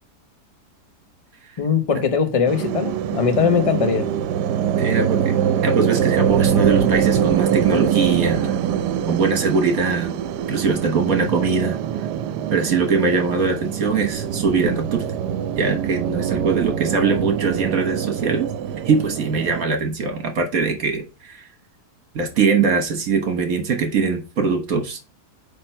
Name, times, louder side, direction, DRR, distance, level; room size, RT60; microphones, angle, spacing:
voice 1, 1.6-4.1, left 6 dB, 30° left, 0.6 m, -20 dB
sound 1, 2.5-19.6, right 9 dB, 85° right, 1.2 m, -23 dB
voice 2, 4.5-5.4 5.6-8.6 9.1-10.1 10.5-11.8 12.5-15.0 15.6-18.5 18.8-21.4 22.1-25.0, right 4 dB, 60° right, 1.5 m, -22 dB
8.7 x 3.4 x 4.3 m
omnidirectional pair, 1.8 m